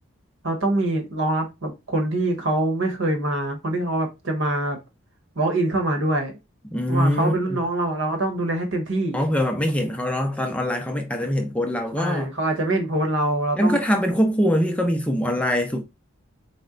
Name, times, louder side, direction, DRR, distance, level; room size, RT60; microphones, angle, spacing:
voice 1, 0.4-4.8 5.4-6.3 6.9-9.2 11.9-13.8, right 1 dB, 70° right, 1.1 m, -24 dB
voice 2, 6.7-7.3 9.1-12.3 13.6-15.8, equal, 5° left, 0.4 m, -23 dB
4.2 x 2.2 x 3.7 m
head